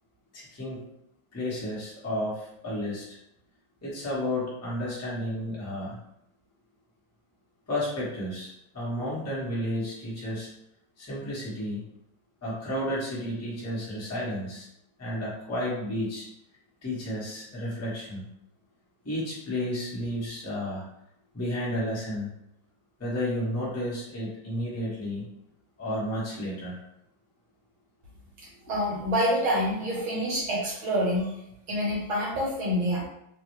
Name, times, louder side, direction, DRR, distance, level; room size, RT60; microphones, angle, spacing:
voice 1, 0.3-0.8 1.3-3.0 3.8-6.0 7.7-10.5 11.0-11.8 12.4-14.7 15.0-16.2 16.8-18.2 19.0-20.8 21.3-22.3 23.0-25.2 25.8-26.8, left 1 dB, 20° left, -8 dB, 0.4 m, -32 dB
voice 2, 28.6-31.3 31.7-33.1, equal, 70° right, -6 dB, 1.6 m, -27 dB
3.7 x 2.1 x 3.1 m, 0.79 s
omnidirectional pair, 2.4 m